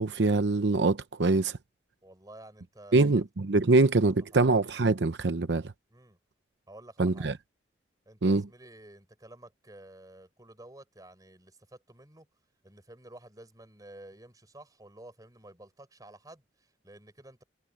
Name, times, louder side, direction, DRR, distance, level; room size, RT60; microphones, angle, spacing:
voice 1, 0.0-1.6 2.9-5.7 7.0-7.3 8.2-8.4, right 3 dB, 75° right, 0.8 m, -24 dB
voice 2, 2.0-3.2 3.7-4.5 5.9-6.2 6.7-7.3 8.1-12.3 12.6-17.4, right 1 dB, 20° right, 4.6 m, -51 dB
head